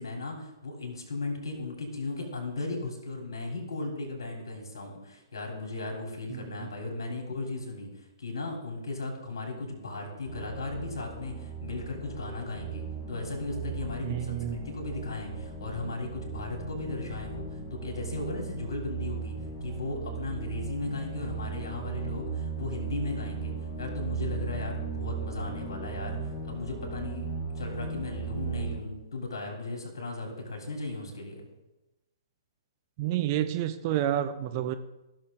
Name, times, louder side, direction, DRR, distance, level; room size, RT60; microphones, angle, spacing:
voice 1, 0.0-17.4 17.7-19.3 19.6-31.5, left 3 dB, 60° left, 1 dB, 3.5 m, -36 dB
sound 1, 10.2-28.8, right 5 dB, 15° left, 1.7 m, -37 dB
voice 2, 14.0-14.7 33.0-34.7, right 11 dB, 35° right, 9 dB, 0.7 m, -29 dB
15.5 x 6.6 x 3.8 m, 0.98 s
figure-of-eight pair, 120°, 3 cm